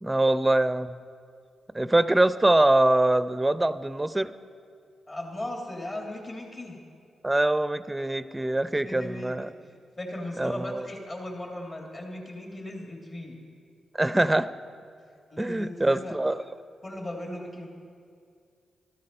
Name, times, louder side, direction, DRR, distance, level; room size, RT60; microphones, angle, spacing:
voice 1, 0.0-1.0 1.7-4.3 7.2-9.5 10.4-10.9 13.9-14.5 15.4-16.4, right 1 dB, 15° right, 14 dB, 0.6 m, -23 dB
voice 2, 5.1-6.8 8.7-9.5 10.0-13.4 15.3-16.2 16.8-17.7, left 1 dB, 35° left, 1 dB, 2.6 m, -37 dB
13.5 x 13.0 x 5.5 m, 2.3 s
supercardioid pair, 50°, 0 cm